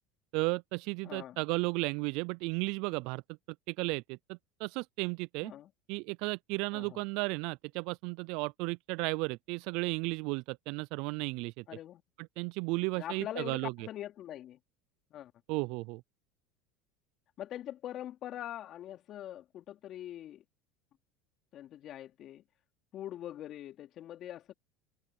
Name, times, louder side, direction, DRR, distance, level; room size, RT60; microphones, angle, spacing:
voice 1, 0.3-3.2 3.7-5.5 5.9-11.6 12.2-13.9 15.5-16.0, right 27 dB, 65° right, 0.4 m, -34 dB
voice 2, 1.0-1.4 5.4-5.7 6.7-7.0 11.7-12.0 12.9-14.6 15.1-15.3 17.4-20.4 21.5-22.4 22.9-24.5, left 12 dB, 50° left, 3.4 m, -43 dB
hypercardioid pair, 90°, 0 cm